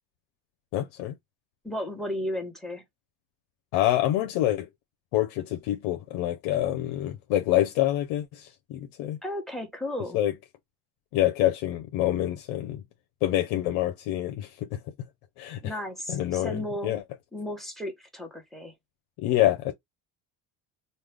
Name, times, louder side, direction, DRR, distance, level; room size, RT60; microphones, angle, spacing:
voice 1, 0.7-1.1 3.7-4.7 5.1-9.2 10.1-10.3 11.1-12.8 13.2-14.8 15.4-15.7 16.1-17.0 19.2-19.7, left 13 dB, 90° left, 0.7 m, -26 dB
voice 2, 1.6-2.8 9.2-10.2 15.6-17.0 17.3-18.7, left 1 dB, ahead, 1.3 m, -34 dB
3.2 x 2.1 x 3.3 m
cardioid pair, 95°, 47 cm